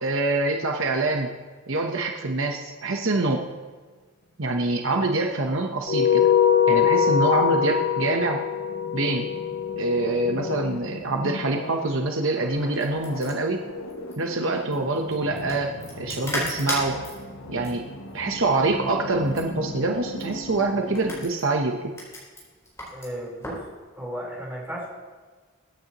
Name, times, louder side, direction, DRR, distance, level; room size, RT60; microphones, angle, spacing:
voice 1, 0.0-1.3 1.7-3.4 4.4-6.3 6.7-8.4 8.9-9.3 9.8-13.6 14.2-17.0 17.5-17.9 18.1-21.8, right 2 dB, 65° right, 3 dB, 1.0 m, -25 dB
sound 1, 5.9-10.7, left 8 dB, 45° left, 0.5 m, -22 dB
sound 2, 6.2-21.3, left 1 dB, 70° left, 1.0 m, -39 dB
sound 3, 12.5-23.7, left 1 dB, 15° left, 4.1 m, -37 dB
voice 2, 22.9-23.6 23.9-24.9, equal, 10° right, -5 dB, 4.1 m, -34 dB
23.0 x 9.4 x 3.0 m, 1.4 s
head